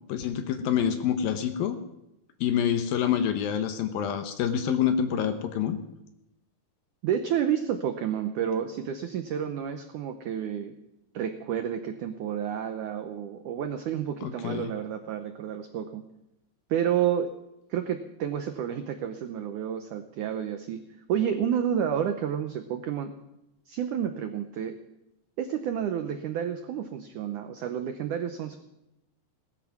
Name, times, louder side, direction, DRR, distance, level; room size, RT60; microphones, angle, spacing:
voice 1, 0.1-1.8 2.4-5.8 14.2-14.7, left 9 dB, 70° left, 8 dB, 2.5 m, -27 dB
voice 2, 7.0-10.7 11.1-16.0 16.7-17.3 17.7-20.8 21.1-23.1 23.7-24.8 25.4-28.6, right 9 dB, 90° right, 7 dB, 1.7 m, -30 dB
18.0 x 13.0 x 6.0 m, 0.89 s
omnidirectional pair, 4.8 m